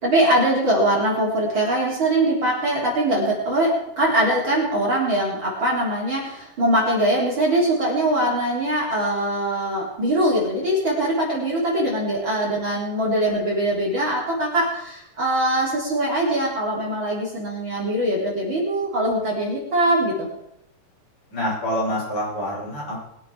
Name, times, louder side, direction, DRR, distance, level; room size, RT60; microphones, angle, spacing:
voice 1, 0.0-20.3, right 1 dB, 35° right, -4 dB, 4.2 m, -22 dB
voice 2, 21.3-23.0, equal, 55° left, -7 dB, 8.3 m, -26 dB
22.0 x 8.4 x 4.9 m, 0.80 s
omnidirectional pair, 3.9 m